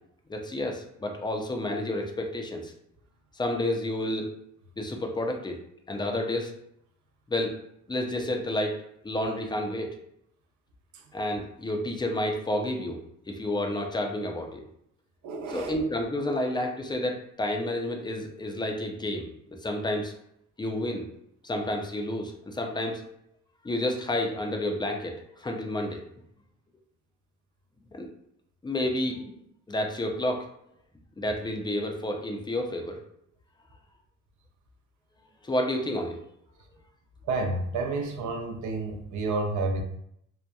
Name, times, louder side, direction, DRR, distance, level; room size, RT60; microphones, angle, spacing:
voice 1, 0.3-2.7 3.4-4.3 4.8-5.6 5.9-6.5 7.3-7.5 7.9-8.8 9.0-9.9 11.1-13.0 13.3-14.6 15.5-19.3 19.6-20.1 20.6-21.0 21.4-23.0 23.6-26.0 27.9-28.1 28.6-29.4 29.7-30.4 31.2-33.0 35.4-36.2, left 1 dB, 15° left, 3 dB, 0.4 m, -30 dB
voice 2, 15.2-15.8 37.2-39.8, right 3 dB, 75° right, 4 dB, 0.6 m, -30 dB
2.8 x 2.1 x 2.2 m, 0.73 s
cardioid pair, 90°, 30 cm